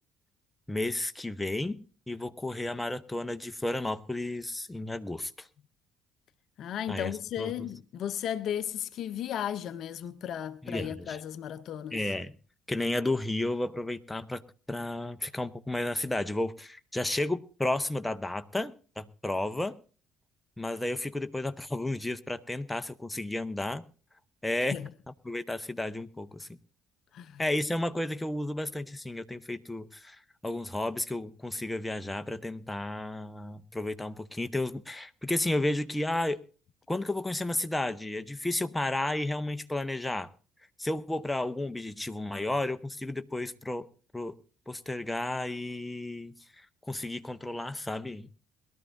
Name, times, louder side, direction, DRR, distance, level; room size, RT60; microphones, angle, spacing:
voice 1, 0.7-5.5 6.9-7.5 10.6-11.2 11.9-12.3 12.7-14.4 14.7-19.8 20.6-23.8 24.4-24.8 25.2-26.5 27.4-30.2 30.4-36.4 36.9-40.3 40.8-43.9 44.1-44.3 44.7-48.3, left 1 dB, 10° left, 0.9 m, -32 dB
voice 2, 6.6-12.0 24.7-24.9 27.1-27.4, left 10 dB, 55° left, 0.7 m, -35 dB
22.0 x 12.5 x 2.6 m
hypercardioid pair, 55°, 0 cm